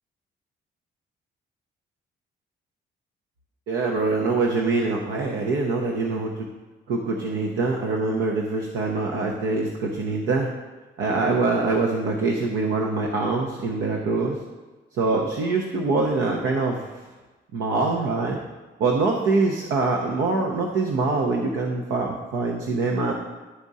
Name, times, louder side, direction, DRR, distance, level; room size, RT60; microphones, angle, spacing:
voice 1, 3.7-6.5 6.9-10.5 11.0-14.4 14.9-16.8 17.5-18.4 18.8-23.1, right 3 dB, 80° right, 1 dB, 0.8 m, -24 dB
11.0 x 3.6 x 4.1 m, 1.2 s
cardioid pair, 90°, 20 cm